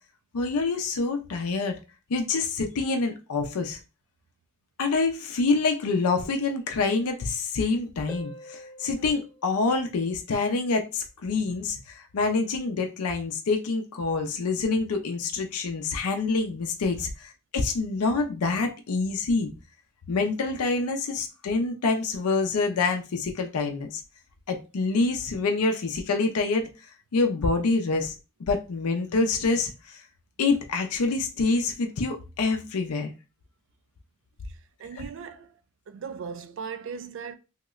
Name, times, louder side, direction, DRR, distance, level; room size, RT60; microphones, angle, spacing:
voice 1, 0.3-1.7 2.1-3.8 4.8-19.5 20.1-24.0 24.5-26.7 27.1-28.1 28.4-30.0 30.4-33.1 34.9-35.0, left 3 dB, 85° left, 0.5 m, -26 dB
Harp, 8.1-10.6 14.1-14.2, left 1 dB, 5° left, 0.5 m, -46 dB
voice 2, 34.5-35.5 35.9-37.3, right 6 dB, 55° right, 0.3 m, -38 dB
3.0 x 2.8 x 2.3 m
head